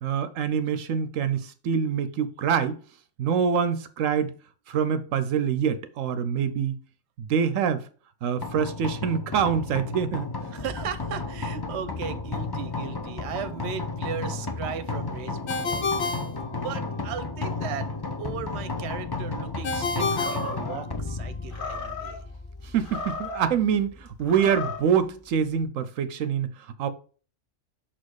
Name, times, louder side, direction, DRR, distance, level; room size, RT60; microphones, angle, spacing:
voice 1, 0.0-2.8 3.2-4.3 4.7-6.8 7.2-7.9 8.2-10.3 22.6-26.9, right 7 dB, 85° right, 1.0 m, -25 dB
sound 1, 8.4-25.6, left 3 dB, 20° left, 0.7 m, -34 dB
voice 2, 10.5-15.9 16.5-17.9 18.2-22.2, right 8 dB, 60° right, 1.0 m, -37 dB
Ringtone, 15.5-17.1 19.6-21.3, left 4 dB, 55° left, 1.1 m, -30 dB
Animal, 20.1-20.8 21.5-22.2 22.8-23.5 24.2-24.9, left 3 dB, 40° left, 1.5 m, -35 dB
6.1 x 4.3 x 4.7 m
omnidirectional pair, 1.3 m